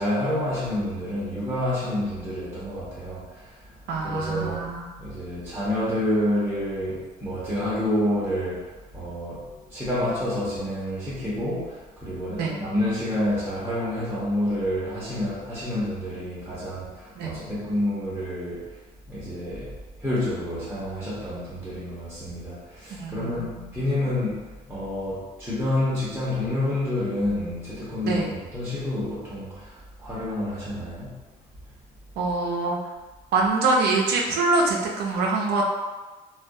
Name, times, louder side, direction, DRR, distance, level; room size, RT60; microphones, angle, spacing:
voice 1, 0.0-4.7 5.0-18.8 19.1-31.2, left 1 dB, 10° right, -10 dB, 0.7 m, -28 dB
voice 2, 3.9-4.9 12.4-12.6 17.2-17.3 23.0-23.7 28.1-28.3 32.2-32.8 33.3-35.6, right 3 dB, 75° right, 0 dB, 0.5 m, -24 dB
2.3 x 2.1 x 2.6 m, 1.2 s
cardioid pair, 110°, 17 cm